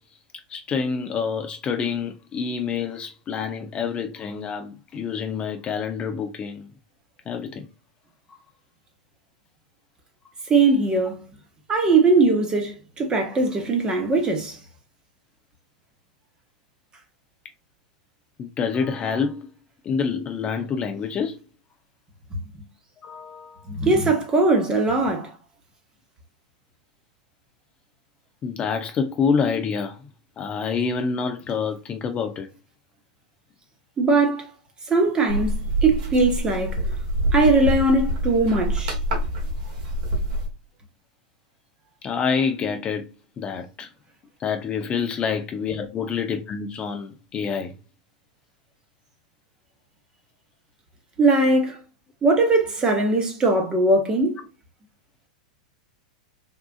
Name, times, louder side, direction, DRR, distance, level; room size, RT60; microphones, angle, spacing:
voice 1, 0.5-6.7 7.3-7.6 18.4-19.5 19.8-21.4 23.0-23.7 28.4-30.0 30.4-32.5 42.0-43.1 43.4-43.9 44.4-47.7, left 6 dB, 30° left, 0.5 m, -27 dB
voice 2, 10.5-11.2 11.7-14.6 23.7-25.3 34.0-34.5 34.9-36.8 37.3-38.9 51.2-51.8 52.2-54.4, right 3 dB, 20° right, 1.0 m, -20 dB
sound 1, 35.3-40.5, right 1 dB, 60° right, 1.3 m, -26 dB
3.6 x 2.4 x 2.3 m
hypercardioid pair, 100°, 4 cm